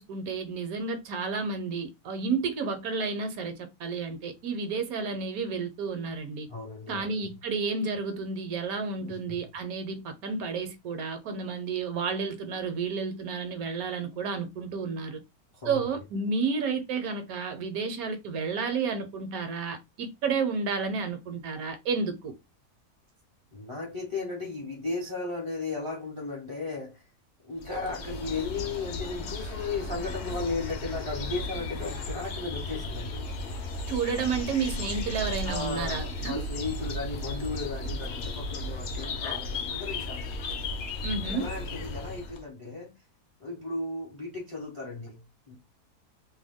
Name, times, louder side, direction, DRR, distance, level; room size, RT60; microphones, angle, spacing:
voice 1, 0.0-6.5 6.9-15.2 15.6-22.3 33.9-36.4 41.0-41.5, right 5 dB, 70° right, 1.0 m, -31 dB
voice 2, 6.5-7.1 9.0-9.4 15.5-15.9 23.5-27.0 27.5-33.3 35.4-40.2 41.3-43.0 43.4-45.6, left 3 dB, 35° left, 0.5 m, -35 dB
sound 1, 27.6-42.4, left 2 dB, 60° left, 0.8 m, -35 dB
2.7 x 2.2 x 3.5 m
omnidirectional pair, 1.7 m